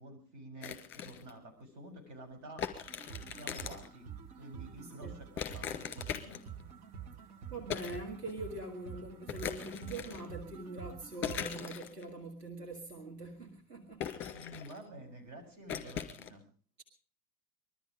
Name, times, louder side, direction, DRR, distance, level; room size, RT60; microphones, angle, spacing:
voice 1, 0.0-2.6 3.2-4.1 4.4-6.4 14.3-16.4, right 1 dB, 40° right, 5 dB, 7.0 m, -50 dB
sound 1, 0.6-1.3 2.6-3.9 5.4-6.6 7.7-8.0 8.3-8.4 9.3-10.3 11.2-12.0 14.0-14.9 15.7-16.3, left 8 dB, 25° left, 2.2 m, -40 dB
sound 2, 2.7-11.7, right 7 dB, 70° right, 2.5 m, -48 dB
voice 2, 4.8-5.1 6.7-7.0 7.5-14.1, right 2 dB, 90° right, 2 dB, 2.1 m, -43 dB
21.5 x 13.5 x 5.0 m, 0.41 s
figure-of-eight pair, 80°, 46 cm